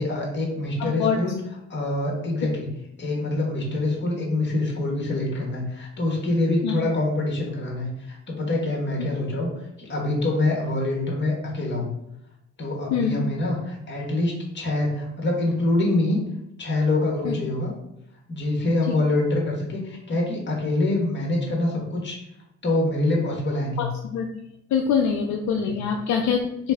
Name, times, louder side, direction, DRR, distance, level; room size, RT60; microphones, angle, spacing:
voice 1, 0.0-1.4 1.7-2.7 3.0-9.5 9.8-11.9 12.6-16.2 16.6-17.7 18.3-22.2 22.6-23.9 25.7-25.8, left 2 dB, 35° left, -1 dB, 1.4 m, -25 dB
voice 2, 0.8-1.2 6.6-6.8 12.9-13.2 17.2-17.3 18.9-19.0 23.8-24.3 24.7-26.7, left 7 dB, 70° left, 2 dB, 0.5 m, -24 dB
3.2 x 3.1 x 3.5 m, 0.85 s
cardioid pair, 90°, 30 cm